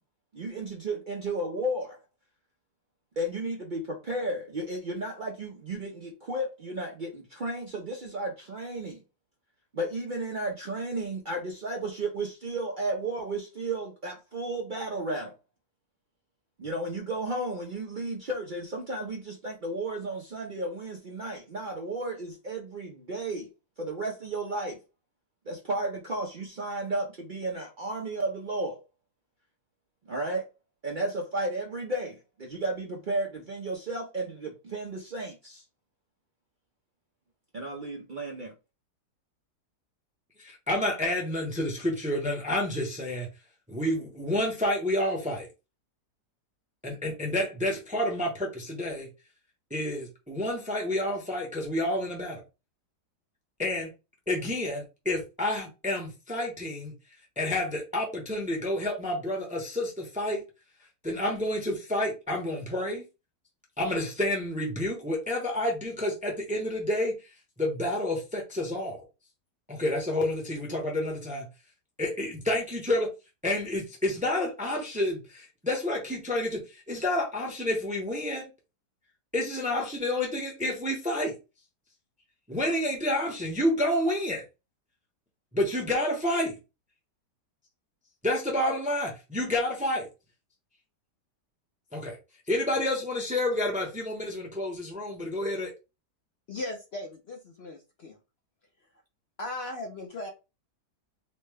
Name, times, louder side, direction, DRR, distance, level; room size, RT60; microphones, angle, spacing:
voice 1, 0.3-2.0 3.2-9.0 9.7-15.3 16.6-23.5 23.8-24.8 25.5-28.8 30.1-30.5 30.8-35.6 37.5-38.5, right 2 dB, 75° right, 0.4 m, -33 dB
voice 2, 40.4-43.3 43.7-45.5 46.8-49.1 49.7-52.4 53.6-53.9 54.3-56.9 57.4-60.4 61.0-63.0 63.8-67.1 67.6-69.0 69.7-71.5 72.0-73.1 73.4-78.5 79.3-81.3 82.5-84.4 85.5-86.6 88.2-90.1 91.9-92.2 92.5-95.7, left 1 dB, 5° right, 0.6 m, -29 dB
voice 3, 96.5-98.2 99.4-100.3, left 2 dB, 60° left, 0.6 m, -37 dB
4.2 x 2.1 x 3.4 m
omnidirectional pair, 1.8 m